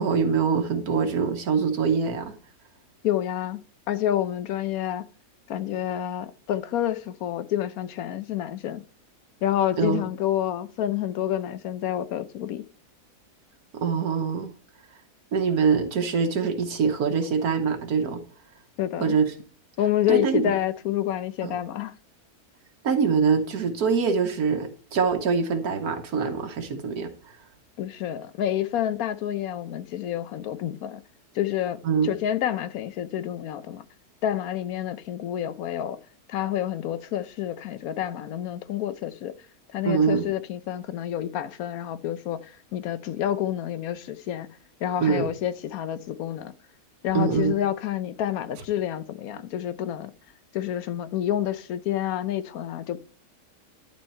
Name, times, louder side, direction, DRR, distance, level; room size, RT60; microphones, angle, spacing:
voice 1, 0.0-2.3 9.8-10.1 13.7-14.5 15.3-18.2 19.0-19.3 20.1-20.5 21.4-21.6 22.8-27.4 31.8-32.2 39.8-40.3 45.0-45.3 47.1-47.5, right 5 dB, 80° right, 1.5 m, -24 dB
voice 2, 3.0-3.6 3.9-5.1 5.5-8.8 9.4-12.6 18.8-19.2 19.8-21.9 27.8-31.0 31.3-33.8 34.2-36.0 36.3-39.3 39.7-44.5 44.8-46.5 47.0-50.1 50.5-53.0, left 11 dB, 70° left, 1.1 m, -28 dB
11.5 x 4.5 x 4.3 m
omnidirectional pair, 1.6 m